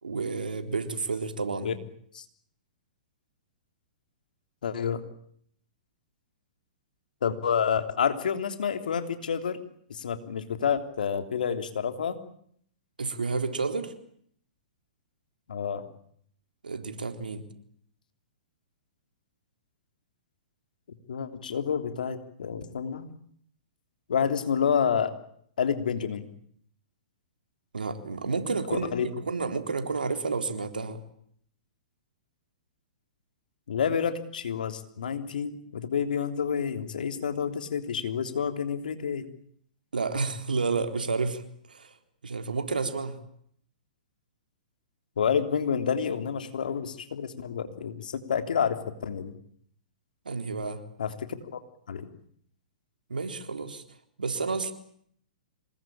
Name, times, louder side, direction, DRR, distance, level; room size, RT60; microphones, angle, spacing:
voice 1, 0.0-1.7 13.0-13.9 16.6-17.4 27.7-28.9 29.3-31.0 39.9-41.4 41.7-41.9 42.2-43.2 50.3-50.8 53.1-53.8 54.2-54.7, right 4 dB, 85° right, 7 dB, 3.9 m, -30 dB
voice 2, 4.6-5.0 7.2-9.6 9.9-12.2 15.5-15.8 21.1-23.1 24.1-25.1 25.6-26.3 28.7-29.1 33.7-39.3 45.2-49.3 51.0-51.6 51.9-52.1, left 7 dB, 75° left, 8 dB, 3.3 m, -29 dB
26.5 x 21.0 x 8.9 m, 0.66 s
hypercardioid pair, 120°, 5 cm